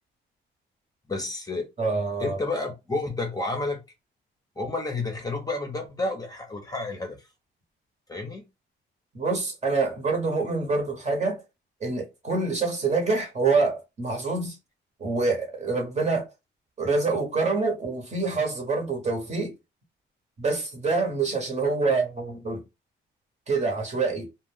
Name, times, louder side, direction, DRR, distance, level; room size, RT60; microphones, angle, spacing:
voice 1, 1.1-1.7 2.2-3.8 4.6-7.2 8.1-8.5, left 2 dB, 20° left, 0.8 m, -30 dB
voice 2, 1.8-2.4 9.1-11.4 11.8-14.6 15.0-16.3 16.8-19.5 20.4-22.6 23.5-24.3, right 3 dB, 35° right, 1.2 m, -26 dB
2.4 x 2.3 x 3.5 m
cardioid pair, 90°, 20 cm